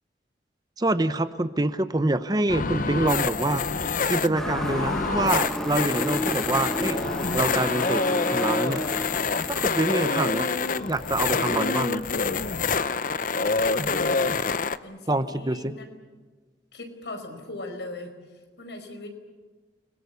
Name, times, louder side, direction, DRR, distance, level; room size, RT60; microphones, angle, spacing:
voice 1, 0.8-3.7 4.1-7.0 7.3-8.8 9.5-10.5 10.8-12.0 15.1-15.7, right 2 dB, 20° right, 12 dB, 0.8 m, -26 dB
sound 1, 2.5-14.8, left 4 dB, 50° left, 0.7 m, -26 dB
Motor vehicle (road) / Siren, 4.3-11.1, equal, 5° left, 1.1 m, -33 dB
voice 2, 13.7-14.2 14.8-15.8 16.7-19.1, left 2 dB, 80° left, 6 dB, 4.8 m, -39 dB
29.5 x 21.5 x 7.0 m, 1.4 s
head